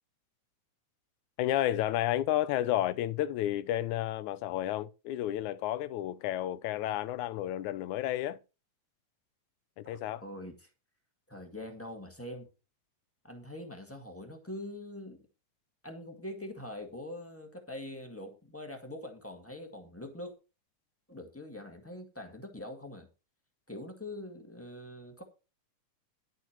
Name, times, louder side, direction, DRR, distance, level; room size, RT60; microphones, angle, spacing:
voice 1, 1.4-8.4 9.8-10.2, left 13 dB, 80° left, 2.0 m, -31 dB
voice 2, 9.8-10.7 11.3-12.5 13.2-15.2 15.8-20.3 21.1-23.1 23.7-25.2, left 1 dB, 10° left, 1.0 m, -43 dB
11.0 x 8.1 x 4.5 m
omnidirectional pair, 3.5 m